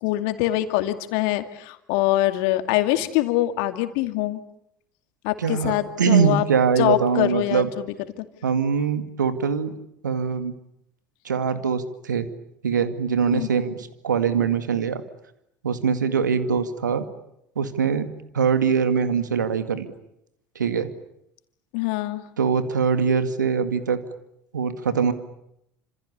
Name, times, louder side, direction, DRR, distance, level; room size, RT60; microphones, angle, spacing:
voice 1, 0.0-4.4 5.2-6.4 6.8-7.9 8.2-8.3 13.3-13.5 21.7-22.2, left 15 dB, 60° left, 8 dB, 2.4 m, -24 dB
voice 2, 5.4-7.7 8.4-9.7 10.0-10.6 11.2-12.3 12.6-15.0 15.6-17.0 17.6-18.1 18.3-19.9 20.6-20.9 22.4-24.0 24.5-25.1, right 6 dB, 80° right, 10 dB, 2.1 m, -23 dB
29.5 x 27.0 x 7.0 m, 0.79 s
figure-of-eight pair, 70°, 10 cm